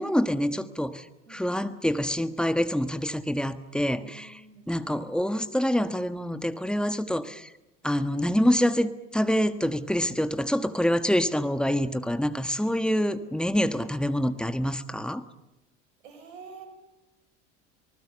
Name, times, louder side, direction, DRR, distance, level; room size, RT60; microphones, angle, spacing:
voice 1, 0.0-4.4 4.7-7.5 7.8-15.2, equal, ahead, 10 dB, 1.4 m, -26 dB
voice 2, 1.3-1.6 4.0-5.1 13.9-14.1 14.4-14.6 16.0-16.7, right 5 dB, 75° right, 7 dB, 6.4 m, -49 dB
26.5 x 20.0 x 7.0 m, 0.94 s
hypercardioid pair, 75°, 37 cm